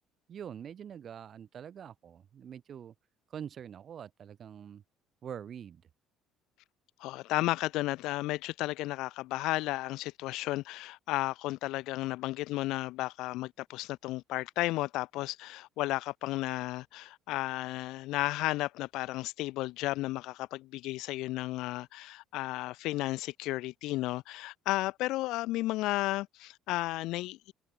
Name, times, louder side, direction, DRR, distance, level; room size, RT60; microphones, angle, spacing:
voice 1, 0.3-2.9 3.3-4.8 5.2-5.8, right 8 dB, 35° right, 5.7 m, -44 dB
voice 2, 7.0-27.5, left 18 dB, 70° left, 0.8 m, -33 dB
cardioid pair, 150°, 0 cm